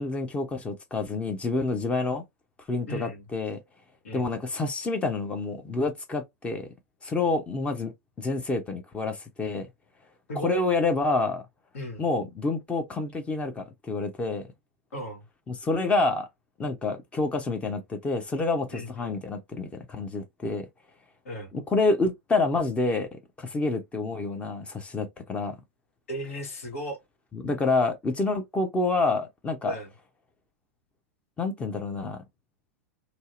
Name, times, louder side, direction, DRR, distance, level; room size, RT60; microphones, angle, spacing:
voice 1, 0.0-2.2 2.7-3.6 4.1-6.7 7.0-7.9 8.2-9.7 10.4-11.4 12.0-14.5 15.5-16.3 16.6-20.7 21.5-25.6 27.3-29.7 31.4-32.2, left 3 dB, 15° left, 0.6 m, -28 dB
voice 2, 2.9-3.3 4.0-4.3 10.3-10.6 11.7-12.1 14.9-15.3 18.7-19.2 21.2-21.5 26.1-27.0 29.6-29.9, equal, 65° left, 1.1 m, -36 dB
2.7 x 2.0 x 2.4 m
figure-of-eight pair, 95°, 8 cm